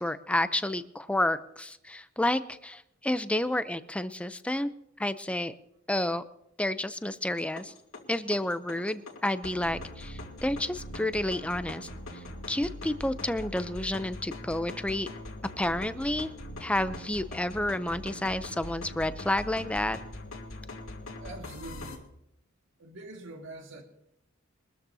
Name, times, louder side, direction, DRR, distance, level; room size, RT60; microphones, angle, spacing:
voice 1, 0.0-4.7 5.0-5.6 5.9-6.2 6.6-7.7 8.1-11.9 12.1-15.1 15.6-16.3 16.6-20.0, left 1 dB, 5° left, 12 dB, 0.6 m, -30 dB
sound 1, 7.3-22.0, left 1 dB, 85° left, 2.5 m, -42 dB
voice 2, 21.2-22.1 22.8-23.8, right 2 dB, 65° right, 3 dB, 2.0 m, -44 dB
23.5 x 13.0 x 2.8 m, 0.78 s
head